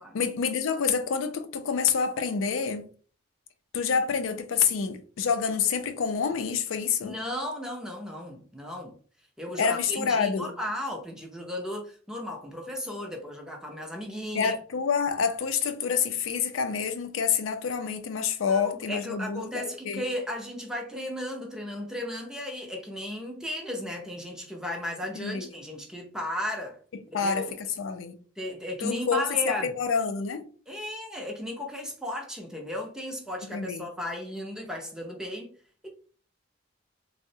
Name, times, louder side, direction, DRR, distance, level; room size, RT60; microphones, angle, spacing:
voice 1, 0.1-2.9 3.7-7.1 9.6-10.5 14.3-20.0 25.1-25.5 27.1-28.2 28.8-30.5 33.4-33.9, left 6 dB, 90° left, 0.4 m, -27 dB
voice 2, 7.0-9.0 9.4-14.5 18.5-26.8 27.1-27.5 28.4-29.7 30.7-35.5 35.8-35.9, left 1 dB, 5° right, 0.5 m, -35 dB
3.5 x 2.0 x 2.7 m
head